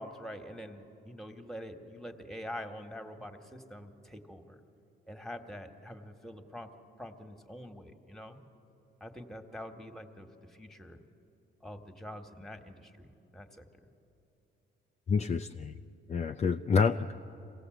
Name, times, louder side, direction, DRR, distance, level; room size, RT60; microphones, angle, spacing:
voice 1, 0.0-4.6 5.1-6.7 7.0-8.4 9.0-11.0 11.6-13.6, equal, ahead, 6 dB, 1.6 m, -45 dB
voice 2, 15.1-15.7 16.1-17.1, left 5 dB, 35° left, 6 dB, 0.5 m, -28 dB
25.5 x 17.0 x 7.9 m, 2.8 s
cardioid pair, 90°, 20 cm